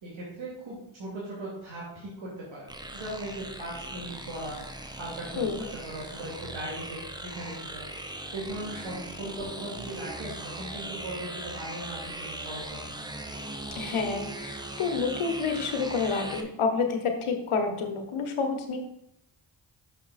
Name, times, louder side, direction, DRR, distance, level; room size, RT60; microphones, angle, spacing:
voice 1, 0.0-4.6 4.9-5.5 5.8-12.8, right 1 dB, 70° right, -6 dB, 2.4 m, -39 dB
sound 1, 2.7-16.4, right 1 dB, 10° right, 0.8 m, -39 dB
voice 2, 5.4-5.7 13.8-18.8, left 5 dB, 85° left, 5 dB, 1.1 m, -29 dB
6.1 x 5.6 x 4.1 m, 0.78 s
cardioid pair, 55°, 48 cm